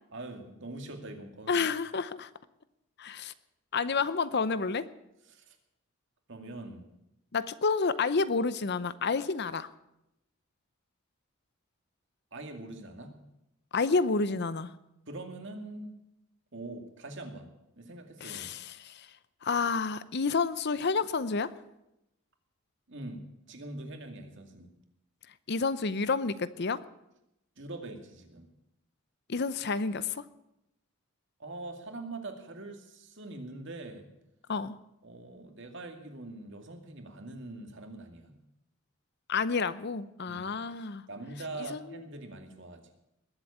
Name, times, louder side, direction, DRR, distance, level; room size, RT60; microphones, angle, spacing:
voice 1, 0.1-1.6 5.3-5.6 6.3-6.8 12.3-13.2 15.1-16.0 16.5-18.5 22.9-24.7 27.6-28.5 31.4-34.1 35.0-38.4 40.3-40.5 41.1-42.9, right 2 dB, 60° right, 4 dB, 2.3 m, -43 dB
voice 2, 1.5-2.3 3.0-3.3 3.7-4.9 7.3-9.7 13.7-14.7 18.2-19.1 19.4-21.5 25.5-26.8 29.3-30.2 34.5-34.8 39.3-41.0 41.7-42.0, left 4 dB, 50° left, 15 dB, 0.7 m, -29 dB
21.0 x 8.0 x 8.6 m, 0.86 s
head